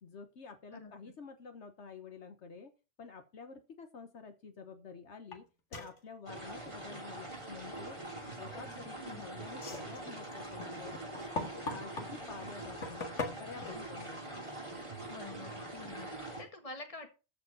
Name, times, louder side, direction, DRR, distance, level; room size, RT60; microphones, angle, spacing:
voice 1, 0.0-2.7 3.0-5.4 5.7-8.0 8.3-11.0 11.3-13.0 13.3-14.2, left 5 dB, 70° left, 7 dB, 1.4 m, -49 dB
sound 1, 5.3-5.4 5.7-6.0 8.4-8.9 9.5-12.1 12.6-13.7, left 3 dB, 85° left, 2.2 m, -40 dB
sound 2, 6.3-16.4, right 2 dB, 25° right, 3.0 m, -44 dB
voice 2, 15.1-17.1, left 3 dB, 30° left, 5 dB, 1.9 m, -47 dB
14.0 x 5.1 x 5.5 m, 0.31 s
omnidirectional pair, 1.2 m